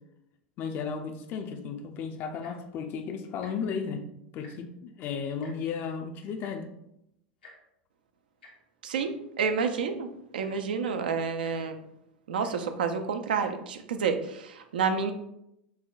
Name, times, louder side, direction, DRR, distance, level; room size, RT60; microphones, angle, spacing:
voice 1, 0.6-4.0 4.3-6.7, left 6 dB, 45° left, 6 dB, 0.4 m, -34 dB
Tick-tock, 2.3-2.7 3.3-3.5 3.8-4.0 4.3-4.8 5.4-5.5 6.4-6.5 7.4-7.5 8.4-8.5 9.4-9.5 10.1-10.2 10.4-10.7 11.4-11.5 12.4-12.5 13.3-13.5 14.2-14.3, left 2 dB, 85° left, 0.9 m, -53 dB
voice 2, 8.8-10.1 10.3-11.8 12.3-15.1, right 5 dB, 80° right, 7 dB, 0.4 m, -29 dB
5.4 x 2.1 x 2.4 m, 0.82 s
hypercardioid pair, 90°, 5 cm